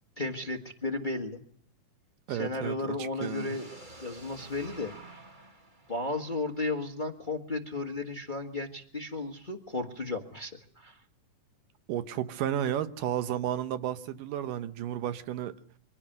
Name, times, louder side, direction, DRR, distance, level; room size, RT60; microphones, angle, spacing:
voice 1, 0.2-1.4 2.3-3.7 4.0-4.9 5.9-11.0, left 2 dB, 45° left, 0.6 m, -34 dB
voice 2, 2.3-3.6 11.9-15.5, right 11 dB, 90° right, 2.7 m, -32 dB
sound 1, 3.2-7.1, right 1 dB, 25° right, 1.1 m, -50 dB
24.5 x 16.0 x 7.8 m
omnidirectional pair, 3.7 m